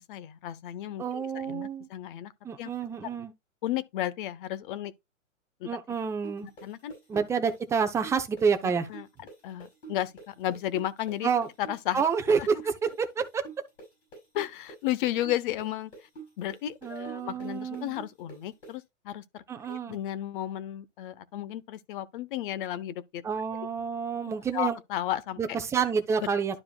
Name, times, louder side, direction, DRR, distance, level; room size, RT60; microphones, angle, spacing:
voice 1, 0.0-2.3 2.6-2.7 3.6-4.9 5.6-5.7 6.6-6.9 8.9-9.1 9.4-11.3 11.6-12.0 12.4-12.5 14.3-16.1 16.4-23.2 24.5-25.4, left 13 dB, 40° left, 0.8 m, -33 dB
voice 2, 1.0-1.9 2.4-3.3 5.7-6.5 7.1-8.9 11.2-11.5 11.9-13.4 16.8-18.0 19.5-20.0 23.2-24.8 25.4-26.6, right 6 dB, 5° right, 0.6 m, -28 dB
sound 1, 6.2-13.9 14.1-18.7, right 4 dB, 70° left, 5.1 m, -45 dB
12.0 x 4.7 x 2.3 m
hypercardioid pair, 130°, 39 cm